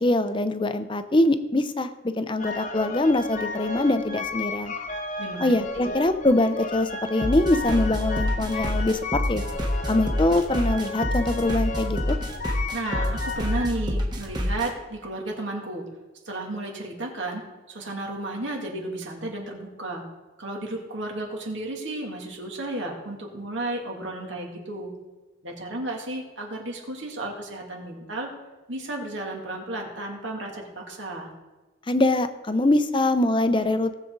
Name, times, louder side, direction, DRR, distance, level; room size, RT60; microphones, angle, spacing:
voice 1, 0.0-4.7 5.4-9.4 9.9-12.2 31.9-33.9, left 2 dB, 25° left, 10 dB, 0.6 m, -23 dB
sound 1, 2.4-13.7, left 3 dB, 40° left, 1.0 m, -34 dB
voice 2, 5.2-5.9 12.7-15.9 16.3-20.1 20.4-24.9 25.4-28.3 28.7-31.3, right 2 dB, 80° right, -1 dB, 2.7 m, -33 dB
sound 2, 7.2-14.7, equal, 20° right, 1.3 m, -28 dB
18.5 x 7.4 x 4.0 m, 1.2 s
head